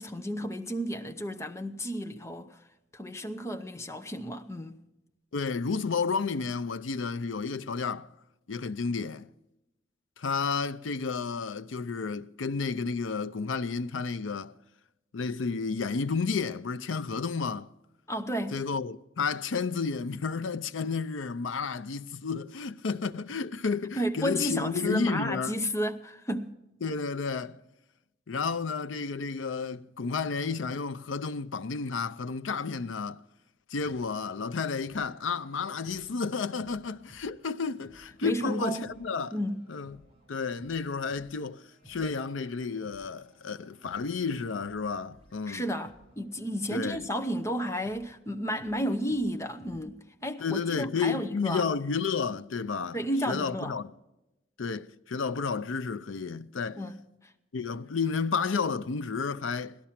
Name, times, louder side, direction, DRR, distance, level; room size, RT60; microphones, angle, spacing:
voice 1, 0.0-2.6 2.9-4.8 18.1-18.6 23.9-26.6 38.2-38.9 39.3-39.7 45.5-51.6 52.9-53.8 56.8-57.0, equal, 15° left, 0.8 m, -32 dB
voice 2, 5.3-8.1 8.5-9.3 10.2-14.5 15.1-17.7 18.5-25.6 26.8-27.6 28.3-33.2 33.7-39.3 39.7-40.0 40.3-45.6 46.7-47.0 50.4-53.0 53.3-53.9 54.6-56.8 57.5-59.8, left 5 dB, 80° left, 0.6 m, -31 dB
sound 1, 33.8-49.8, right 1 dB, 30° right, 5.3 m, -59 dB
17.0 x 12.5 x 5.8 m
head